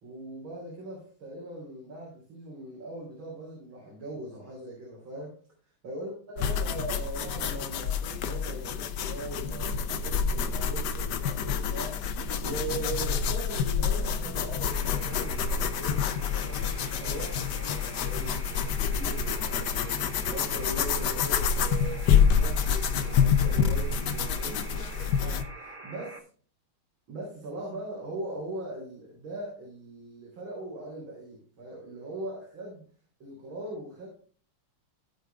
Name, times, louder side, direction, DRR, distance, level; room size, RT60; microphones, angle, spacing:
voice 1, 0.0-5.4 5.8-26.2 27.1-32.8 33.2-34.1, right 2 dB, 70° right, -4 dB, 4.3 m, -40 dB
sound 1, 6.4-25.4, left 7 dB, 65° left, 1.2 m, -27 dB
sound 2, 14.7-26.2, right 1 dB, 30° right, 1.0 m, -46 dB
15.5 x 5.2 x 3.4 m, 0.43 s
omnidirectional pair, 2.3 m